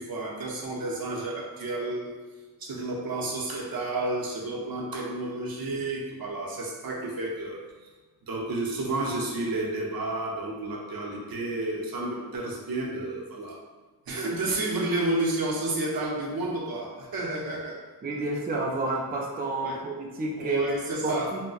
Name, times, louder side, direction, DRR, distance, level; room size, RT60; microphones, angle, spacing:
voice 1, 0.0-2.2 2.6-7.9 8.2-13.6 14.1-17.8 19.6-19.8 20.4-21.3, right 2 dB, 70° right, -2 dB, 0.7 m, -31 dB
voice 2, 18.0-20.8 21.0-21.4, right 2 dB, 25° right, -1 dB, 0.4 m, -29 dB
3.8 x 2.1 x 2.3 m, 1.3 s
wide cardioid pair, 65°, 37 cm